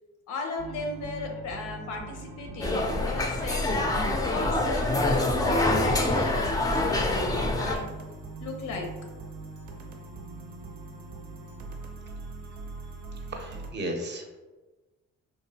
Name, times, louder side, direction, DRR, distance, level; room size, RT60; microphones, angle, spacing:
voice 1, 0.3-3.8 4.3-7.9 8.4-8.9, left 3 dB, 80° left, 2 dB, 0.6 m, -36 dB
sound 1, 0.6-13.7, right 3 dB, 80° right, 0.5 m, -41 dB
sound 2, 2.6-7.7, left 2 dB, 15° left, 0.3 m, -26 dB
voice 2, 13.3-14.3, right 1 dB, 35° right, 2 dB, 0.6 m, -34 dB
2.9 x 2.4 x 2.7 m, 1.2 s
cardioid pair, 90°, 30 cm